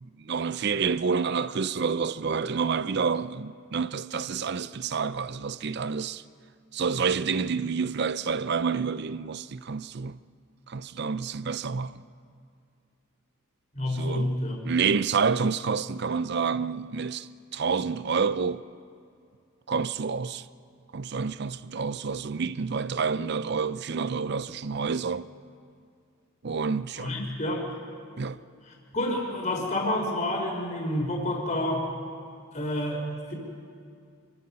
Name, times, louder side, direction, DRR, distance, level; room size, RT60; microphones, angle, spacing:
voice 1, 0.0-6.2 6.7-10.2 10.7-12.0 13.9-14.4 14.6-18.6 19.7-20.5 20.9-25.3 26.4-27.1 28.2-28.4, right 5 dB, 50° right, 0.5 m, -28 dB
voice 2, 13.7-14.6 27.0-27.7 28.7-31.9 32.5-33.3, left 1 dB, 35° left, 4.1 m, -29 dB
28.5 x 22.5 x 5.6 m
head